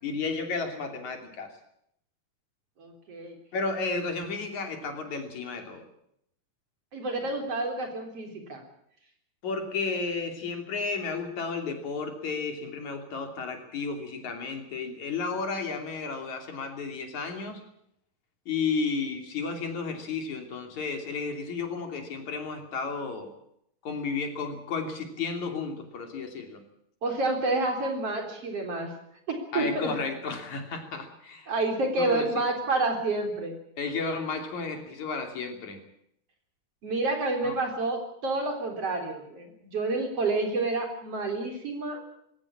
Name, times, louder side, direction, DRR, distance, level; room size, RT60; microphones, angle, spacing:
voice 1, 0.0-1.5 3.5-5.9 9.4-17.6 18.5-23.3 23.8-26.6 29.5-31.5 31.9-32.4 33.8-35.8 37.4-37.5, left 4 dB, 55° left, 5 dB, 4.2 m, -33 dB
voice 2, 2.8-3.4 6.9-8.6 27.0-28.9 29.3-29.9 31.5-33.5 36.8-42.0, right 2 dB, 45° right, 4 dB, 4.6 m, -29 dB
20.5 x 17.0 x 8.7 m, 0.73 s
omnidirectional pair, 4.0 m